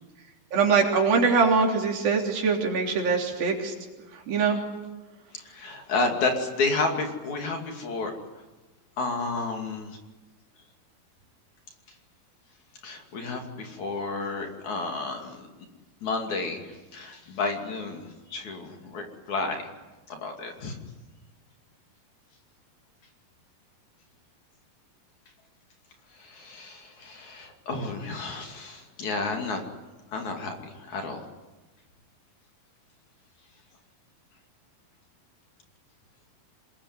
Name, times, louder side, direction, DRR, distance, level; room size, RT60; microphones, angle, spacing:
voice 1, 0.5-3.7 4.3-4.6, right 5 dB, 80° right, 1 dB, 5.2 m, -23 dB
voice 2, 5.3-8.1 9.0-10.0 12.8-15.4 16.0-19.6 20.1-20.8 26.1-29.6 30.1-31.2, left 3 dB, 55° left, 3 dB, 3.9 m, -31 dB
26.0 x 21.5 x 9.7 m, 1.2 s
omnidirectional pair, 4.1 m